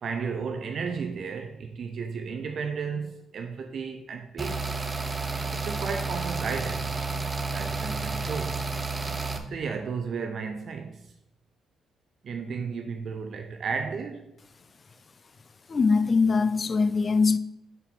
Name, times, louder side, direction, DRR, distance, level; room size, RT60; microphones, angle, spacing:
voice 1, 0.0-4.8 5.5-6.9 7.5-8.6 9.5-11.0 12.2-14.3, right 5 dB, 60° right, 0.6 m, -33 dB
sound 1, 4.4-9.4, right 3 dB, 20° right, 0.8 m, -31 dB
voice 2, 15.7-17.4, left 4 dB, 35° left, 0.4 m, -22 dB
5.4 x 4.4 x 5.8 m
cardioid pair, 90°, 0 cm